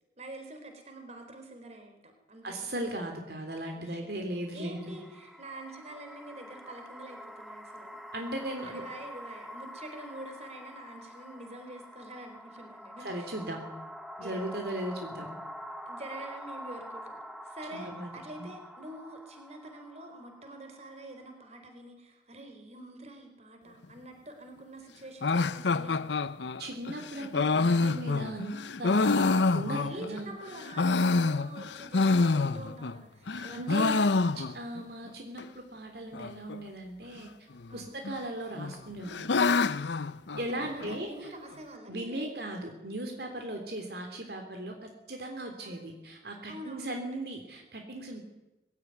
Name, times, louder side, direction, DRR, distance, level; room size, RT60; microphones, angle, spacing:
voice 1, 0.2-2.7 3.7-4.0 4.5-8.0 8.6-13.4 14.2-14.9 15.8-26.1 29.7-34.4 37.7-37.9 40.4-42.3 45.6-45.7 46.5-47.0, right 1 dB, 35° right, 5 dB, 4.2 m, -46 dB
voice 2, 2.4-5.0 8.1-8.8 13.0-13.6 14.2-15.3 17.7-18.1 18.4-18.5 26.6-28.5 28.8-29.3 29.5-30.3 33.3-34.0 34.3-37.3 37.7-39.4 40.4-41.3 41.9-48.2, right 1 dB, 60° right, 3 dB, 3.3 m, -37 dB
sound 1, 4.5-21.6, equal, ahead, 1.0 m, -46 dB
sound 2, 25.2-30.2 30.6-33.0 33.3-34.8 35.1-35.2 35.4-35.5 36.1-36.6 37.6-38.2 38.6-41.0, left 3 dB, 80° left, 0.7 m, -27 dB
21.0 x 16.5 x 9.5 m, 0.99 s
head